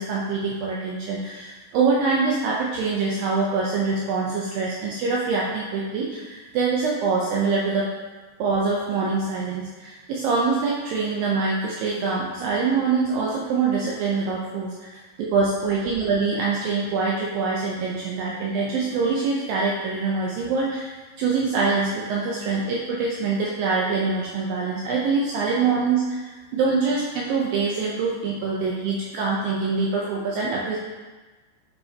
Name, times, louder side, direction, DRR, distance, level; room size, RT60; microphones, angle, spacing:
voice 1, 0.0-7.9 8.4-20.9 21.2-30.8, right 4 dB, 85° right, -4 dB, 2.0 m, -24 dB
9.0 x 7.1 x 2.9 m, 1.3 s
omnidirectional pair, 5.2 m